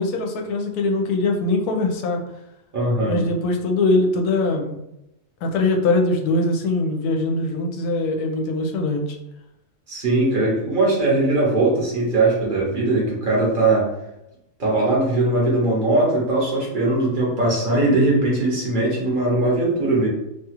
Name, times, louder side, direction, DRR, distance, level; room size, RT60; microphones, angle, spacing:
voice 1, 0.0-2.2 3.0-4.8 5.4-9.2, left 2 dB, 80° left, 3 dB, 1.1 m, -22 dB
voice 2, 2.7-3.2 9.9-13.9 14.6-20.1, right 2 dB, 40° right, -3 dB, 0.8 m, -20 dB
2.9 x 2.4 x 2.9 m, 0.87 s
omnidirectional pair, 1.7 m